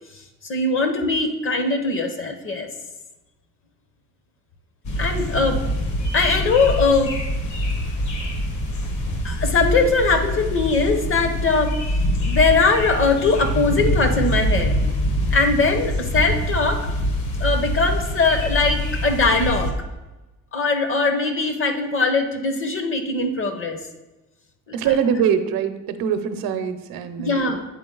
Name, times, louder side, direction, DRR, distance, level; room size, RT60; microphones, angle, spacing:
voice 1, 0.1-2.7 5.0-5.6 6.1-7.2 9.2-11.8 12.2-14.7 15.3-16.9 17.4-19.7 20.5-23.8 27.2-27.6, left 3 dB, 35° left, 6 dB, 0.8 m, -21 dB
sound 1, 4.8-19.7, equal, 55° left, 1.2 m, -24 dB
voice 2, 24.7-27.5, right 8 dB, 80° right, 10 dB, 0.7 m, -23 dB
8.5 x 4.0 x 3.8 m, 1.1 s
cardioid pair, 150°, 36 cm